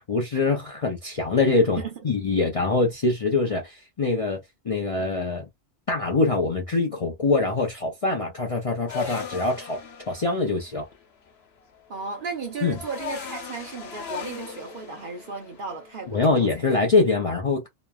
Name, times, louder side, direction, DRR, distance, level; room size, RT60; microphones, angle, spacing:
voice 1, 0.0-5.4 5.9-9.8 10.1-10.9 12.6-12.7 16.1-17.7, left 3 dB, 40° left, 0.5 m, -24 dB
sound 1, 8.9-16.6, left 6 dB, 65° left, 1.0 m, -39 dB
voice 2, 11.9-16.7, right 5 dB, 50° right, 0.8 m, -35 dB
3.0 x 2.1 x 2.3 m
omnidirectional pair, 1.2 m